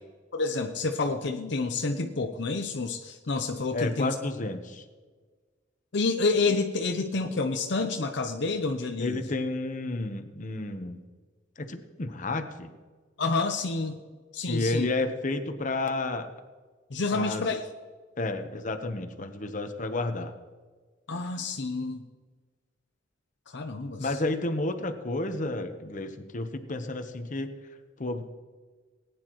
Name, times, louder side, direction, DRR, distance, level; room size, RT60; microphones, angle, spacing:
voice 1, 0.3-4.1 5.9-9.2 13.2-14.0 14.3-14.9 16.9-17.6 21.1-22.0 23.5-24.2, left 3 dB, 65° left, 5 dB, 0.7 m, -29 dB
voice 2, 3.7-4.8 9.0-11.0 11.6-12.7 14.5-16.3 17.1-17.4 18.2-20.3 24.0-27.5 28.0-28.3, left 2 dB, 40° left, 7 dB, 1.0 m, -31 dB
19.0 x 9.7 x 3.1 m, 1.4 s
head